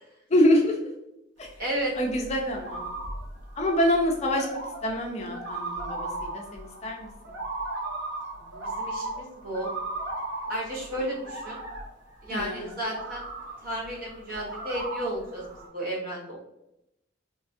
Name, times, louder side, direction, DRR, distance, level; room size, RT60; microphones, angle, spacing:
voice 1, 0.3-0.8 1.4-1.5 2.0-2.8 3.6-4.5 4.8-7.1 12.3-12.6, equal, 35° left, 2 dB, 0.4 m, -25 dB
sound 1, 1.4-15.7, right 2 dB, 85° right, 0.9 m, -37 dB
voice 2, 1.6-1.9 8.4-9.7 10.5-11.6 12.2-13.2 13.6-15.5 15.7-16.4, right 1 dB, 50° right, -4 dB, 0.8 m, -33 dB
3.3 x 2.2 x 2.5 m, 0.85 s
head